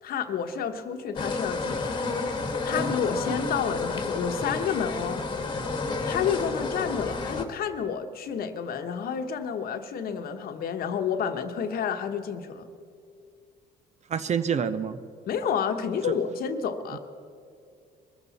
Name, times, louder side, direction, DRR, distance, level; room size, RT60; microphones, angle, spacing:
voice 1, 0.0-2.1 2.6-5.2 6.0-12.7 15.3-17.0, left 7 dB, 60° left, 7 dB, 1.1 m, -30 dB
sound 1, 1.2-7.5, left 3 dB, 30° left, 1.5 m, -30 dB
voice 2, 14.1-15.0, right 7 dB, 40° right, 12 dB, 0.7 m, -27 dB
22.0 x 14.5 x 4.2 m, 2.4 s
cardioid pair, 110°, 17 cm